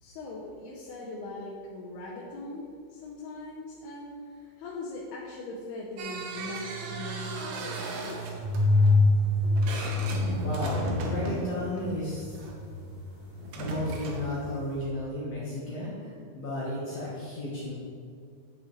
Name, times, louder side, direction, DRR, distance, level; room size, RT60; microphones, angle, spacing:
voice 1, 0.0-8.4, left 2 dB, 85° left, -4 dB, 2.8 m, -40 dB
sound 1, 6.0-12.5 13.4-14.4, right 3 dB, 75° right, 2.5 m, -36 dB
sound 2, 8.4-13.4 13.7-14.8, left 2 dB, 35° right, 1.6 m, -26 dB
voice 2, 10.4-12.4 13.5-17.7, left 1 dB, 60° left, -7 dB, 1.8 m, -34 dB
8.4 x 7.4 x 3.2 m, 2.3 s
omnidirectional pair, 4.4 m